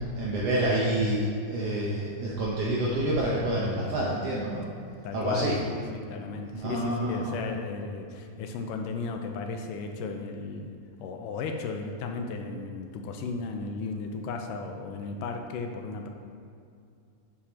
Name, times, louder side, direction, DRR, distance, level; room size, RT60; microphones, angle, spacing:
voice 1, 0.2-1.2 1.5-4.7 5.1-5.6 6.5-7.3, right 1 dB, 75° right, -5 dB, 1.4 m, -28 dB
voice 2, 5.0-16.1, left 4 dB, 85° left, 4 dB, 2.2 m, -35 dB
8.5 x 4.8 x 4.3 m, 2.4 s
omnidirectional pair, 3.7 m